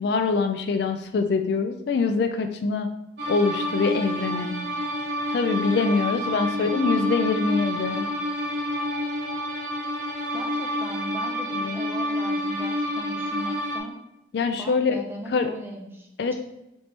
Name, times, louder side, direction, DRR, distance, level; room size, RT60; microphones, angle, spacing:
voice 1, 0.0-2.9 3.3-4.6 5.3-8.1 11.6-11.8 14.3-14.9 15.3-15.5 16.2-16.3, left 4 dB, 60° left, 7 dB, 0.3 m, -24 dB
sound 1, 3.2-13.8, left 1 dB, 60° right, 0.9 m, -28 dB
voice 2, 6.3-7.0 10.3-14.0 14.6-16.3, right 1 dB, 10° right, 1 dB, 0.5 m, -38 dB
4.3 x 3.3 x 2.9 m, 0.89 s
head